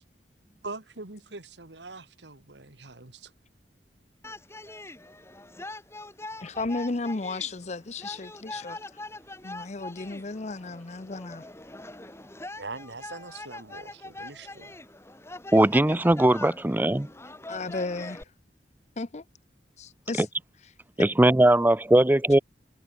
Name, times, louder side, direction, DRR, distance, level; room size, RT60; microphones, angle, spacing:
voice 1, 0.6-3.3 12.6-14.7, right 3 dB, 85° right, 2.3 m, -42 dB
sound 1, 4.2-18.2, left 2 dB, 15° left, 2.9 m, -43 dB
voice 2, 6.4-9.0 9.4-11.4 17.5-18.3 19.0-19.2 19.8-20.3, left 3 dB, 40° left, 0.7 m, -34 dB
voice 3, 15.5-17.1 21.0-22.4, right 1 dB, 10° right, 0.5 m, -20 dB
head